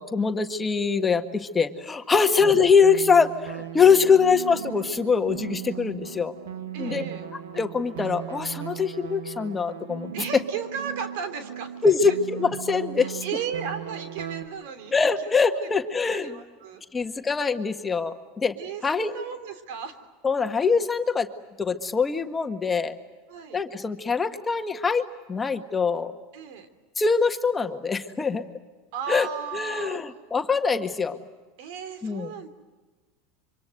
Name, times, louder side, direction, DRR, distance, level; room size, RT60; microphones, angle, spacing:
voice 1, 0.0-6.3 6.8-7.0 7.6-10.1 11.8-13.2 14.9-16.4 16.9-18.5 18.8-19.1 20.2-21.3 21.6-23.0 23.5-25.0 25.3-26.1 27.0-28.5 29.1-29.3 29.5-31.2 32.0-32.3, left 5 dB, 20° left, 7 dB, 1.7 m, -23 dB
sound 1, 2.4-14.4, right 9 dB, 85° right, 2.3 m, -37 dB
voice 2, 6.7-7.3 10.1-12.2 13.0-15.3 16.2-16.8 18.6-20.0 23.3-23.6 26.3-26.7 28.9-30.0 31.6-32.5, right 7 dB, 70° right, 10 dB, 3.3 m, -35 dB
26.5 x 25.0 x 7.9 m, 1.3 s
hypercardioid pair, 95°, 0 cm